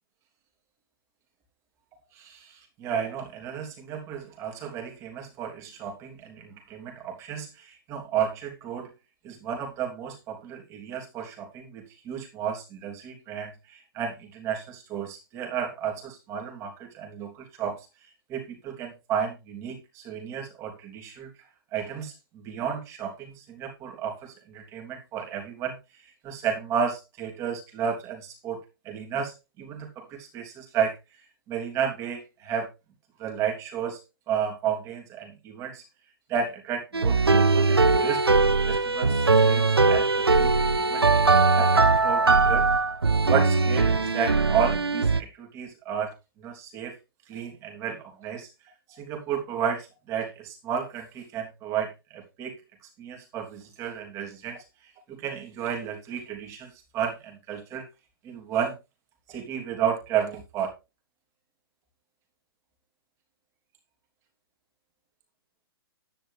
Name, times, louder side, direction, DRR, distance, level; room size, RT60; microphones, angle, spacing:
voice 1, 2.1-8.9 9.2-21.3 21.7-31.0 31.5-32.7 33.2-35.8 36.3-38.3 38.6-41.1 41.5-42.7 43.2-47.0 47.3-48.5 48.9-52.6 53.0-57.9 58.2-58.8 59.3-60.7, right 8 dB, 25° right, 1 dB, 3.3 m, -32 dB
sound 1, 36.9-45.2, right 3 dB, 80° right, 0.7 m, -21 dB
10.5 x 10.0 x 3.5 m, 0.24 s
figure-of-eight pair, 120°, 13 cm